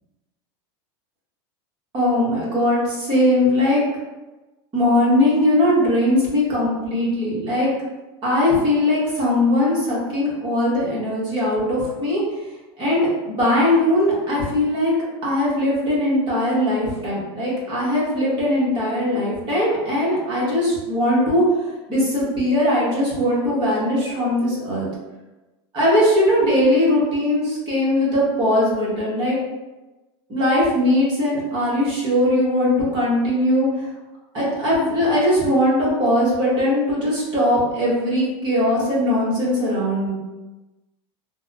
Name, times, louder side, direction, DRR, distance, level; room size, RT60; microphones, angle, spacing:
voice 1, 1.9-3.8 4.7-7.7 8.2-12.2 12.8-14.9 15.2-21.4 21.9-24.9 25.7-29.4 30.3-33.7 34.3-40.1, left 1 dB, 35° right, -7 dB, 1.4 m, -20 dB
3.3 x 2.2 x 2.7 m, 1.1 s
supercardioid pair, 135°, 14 cm